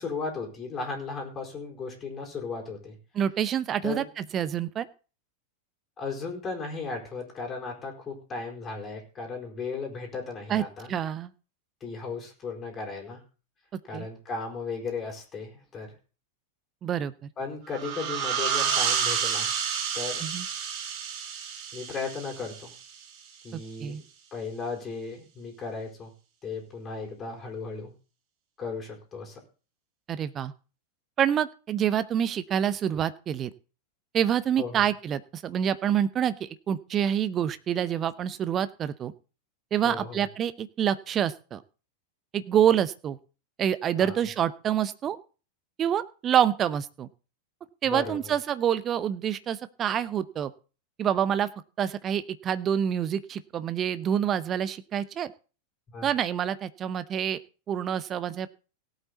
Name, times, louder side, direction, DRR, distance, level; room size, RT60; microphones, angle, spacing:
voice 1, 0.0-3.0 3.8-4.0 6.0-10.9 11.8-13.2 13.8-15.9 17.4-19.5 19.9-20.2 21.7-22.7 23.4-24.0 24.3-26.1 26.4-27.9 28.6-29.4 34.6-34.9 39.8-40.2 44.0-44.2 47.8-48.3 55.9-56.1, left 4 dB, 20° left, 0 dB, 4.6 m, -36 dB
voice 2, 3.1-4.0 4.3-4.9 10.5-11.3 13.9-14.1 16.8-17.3 20.2-20.5 23.5-24.0 30.1-30.5 31.2-33.5 34.1-39.1 39.7-41.6 42.3-43.2 43.6-45.2 45.8-47.1 47.8-50.5 51.0-51.5 51.8-55.3 56.0-57.4 57.7-58.5, right 9 dB, 30° right, 15 dB, 0.8 m, -27 dB
sound 1, 17.7-23.1, right 7 dB, 45° right, 2.3 m, -30 dB
17.5 x 8.2 x 4.0 m, 0.36 s
figure-of-eight pair, 90°, 0 cm